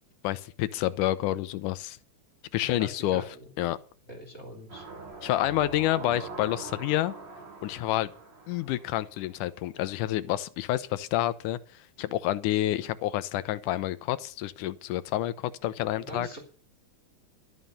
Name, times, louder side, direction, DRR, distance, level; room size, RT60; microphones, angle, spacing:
voice 1, 0.2-2.0 2.5-3.8 5.2-7.1 7.6-8.1 8.5-11.6 12.0-16.3, left 14 dB, 90° left, 2.3 m, -29 dB
voice 2, 2.6-3.5 4.1-4.8 16.1-16.4, equal, 20° left, 3.4 m, -42 dB
sound 1, 4.7-9.6 9.9-10.0, right 3 dB, 60° right, 4.2 m, -43 dB
13.0 x 7.3 x 7.9 m
omnidirectional pair, 3.6 m